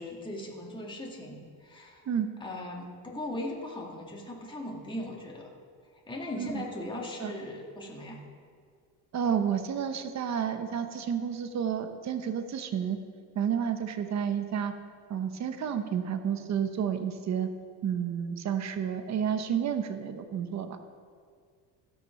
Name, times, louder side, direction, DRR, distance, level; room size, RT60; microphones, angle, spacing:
voice 1, 0.0-2.0 2.4-5.5 6.1-8.2, left 1 dB, 10° left, -2 dB, 2.0 m, -38 dB
voice 2, 9.1-13.0 13.3-14.7 15.1-17.5 17.8-20.8, right 8 dB, 40° right, 8 dB, 1.0 m, -30 dB
15.5 x 6.3 x 5.8 m, 2.1 s
cardioid pair, 125°, 40 cm